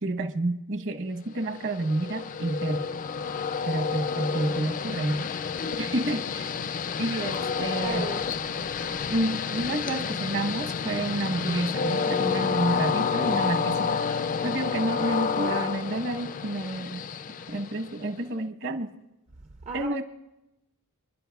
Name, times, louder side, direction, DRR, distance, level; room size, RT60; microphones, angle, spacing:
voice 1, 0.0-2.9 3.7-5.3 5.8-6.5 7.0-8.1 9.1-14.1 14.4-17.0 17.5-19.0 19.7-20.0, right 2 dB, 55° right, 1.0 m, -29 dB
Train, 1.4-18.2, left 6 dB, 35° left, 0.3 m, -29 dB
voice 2, 7.8-9.2 19.6-19.9, right 4 dB, 30° right, 0.4 m, -38 dB
28.0 x 10.5 x 2.3 m
head